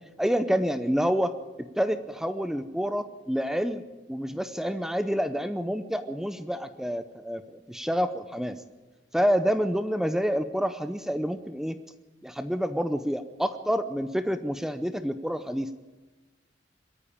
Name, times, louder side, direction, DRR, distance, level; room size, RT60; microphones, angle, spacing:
voice 1, 0.2-1.3 1.8-8.6 9.1-11.8 12.2-15.7, equal, 5° right, 10 dB, 0.6 m, -28 dB
22.5 x 14.0 x 8.7 m, 1.2 s
head